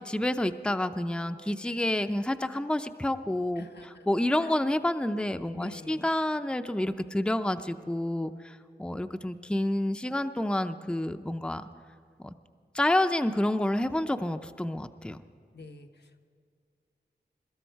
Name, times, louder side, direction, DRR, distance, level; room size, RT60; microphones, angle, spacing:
voice 1, 0.0-3.7 4.1-11.6 12.7-15.2, left 1 dB, 5° left, 8 dB, 0.5 m, -29 dB
voice 2, 3.5-4.1 4.4-4.6 5.5-6.1 15.5-16.2, left 3 dB, 75° left, 5 dB, 1.0 m, -48 dB
23.0 x 13.0 x 4.6 m, 2.2 s
wide cardioid pair, 60°, 17 cm